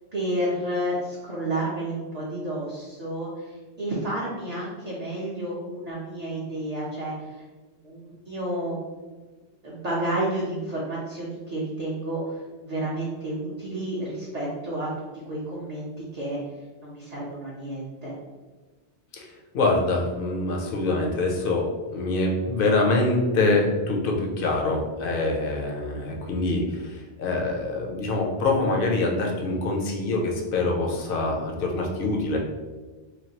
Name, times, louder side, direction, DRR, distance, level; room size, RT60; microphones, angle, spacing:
voice 1, 0.1-7.1 7.8-9.1 9.6-16.4 16.8-18.1, right 1 dB, 45° right, -7 dB, 0.6 m, -31 dB
voice 2, 19.5-32.4, left 2 dB, 60° left, 0 dB, 0.7 m, -25 dB
3.1 x 2.3 x 2.8 m, 1.3 s
omnidirectional pair, 1.2 m